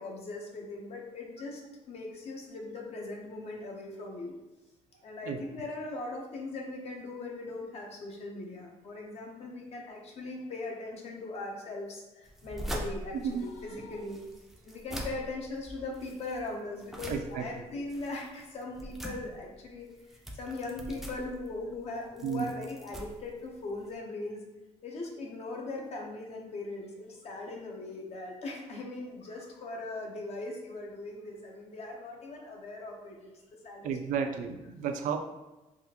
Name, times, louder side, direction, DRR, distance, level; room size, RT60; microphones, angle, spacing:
voice 1, 0.0-4.3 5.0-14.2 14.6-24.4 24.8-33.3 33.6-34.3, left 2 dB, 55° left, 0 dB, 0.7 m, -40 dB
sound 1, 12.2-24.0, right 1 dB, ahead, 0.4 m, -43 dB
voice 2, 17.1-17.4 22.2-22.5 33.8-35.2, right 7 dB, 85° right, 7 dB, 0.4 m, -32 dB
3.5 x 2.4 x 2.8 m, 1.0 s
cardioid pair, 140°, 13 cm